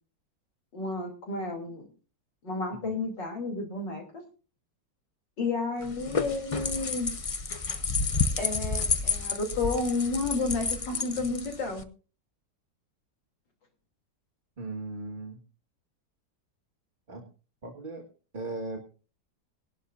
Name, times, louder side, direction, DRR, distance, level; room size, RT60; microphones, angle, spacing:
voice 1, 0.7-1.9 2.4-4.0 5.4-7.1 8.4-11.8, left 3 dB, 85° left, 3 dB, 3.8 m, -31 dB
sound 1, 5.8-11.8, left 4 dB, 60° left, 0.3 m, -30 dB
voice 2, 14.6-15.4 17.1-17.3 17.6-18.1 18.3-18.8, right 2 dB, 30° right, 0 dB, 1.8 m, -38 dB
20.0 x 11.5 x 2.6 m, 0.35 s
omnidirectional pair, 1.9 m